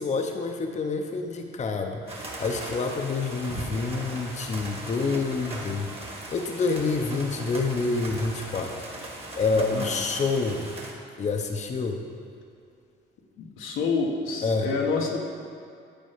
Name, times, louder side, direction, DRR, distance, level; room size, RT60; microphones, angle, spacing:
voice 1, 0.0-5.9 6.3-8.7 9.3-10.7 11.2-12.0 14.4-14.7, left 4 dB, 35° left, 4 dB, 0.7 m, -27 dB
sound 1, 2.1-10.9, right 2 dB, 30° right, 1.5 m, -39 dB
voice 2, 9.5-9.9 13.4-15.2, left 4 dB, 85° left, 0 dB, 1.1 m, -28 dB
10.5 x 4.3 x 5.6 m, 2.4 s
cardioid pair, 90°, 20 cm